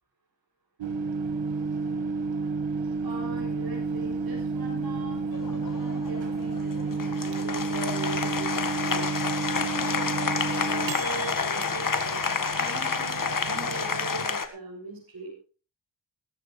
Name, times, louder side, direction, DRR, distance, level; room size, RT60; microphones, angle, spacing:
Microwave oven, 0.8-14.3, right 4 dB, 85° right, 1.8 m, -31 dB
voice 1, 3.0-9.1 9.5-12.2 12.5-15.3, right 3 dB, 55° right, -2 dB, 6.7 m, -40 dB
Applause, 5.3-14.5, left 5 dB, 45° left, 1.7 m, -29 dB
16.5 x 14.0 x 3.2 m, 0.36 s
cardioid pair, 60°, 43 cm